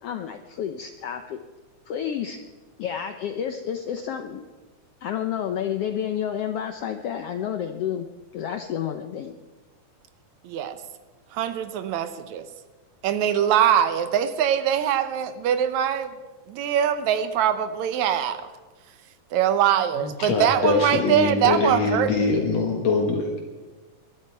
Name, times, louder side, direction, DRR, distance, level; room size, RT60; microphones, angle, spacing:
voice 1, 0.0-1.4 1.9-2.4 2.8-4.4 5.0-8.1 8.3-9.3, left 9 dB, 80° left, 7 dB, 1.3 m, -30 dB
voice 2, 10.4-10.8 11.3-12.5 13.0-16.1 16.5-18.4 19.3-22.4, right 9 dB, 70° right, 11 dB, 2.1 m, -23 dB
voice 3, 20.0-23.4, left 4 dB, 60° left, 2 dB, 2.6 m, -23 dB
22.0 x 12.5 x 4.6 m, 1.3 s
omnidirectional pair, 3.6 m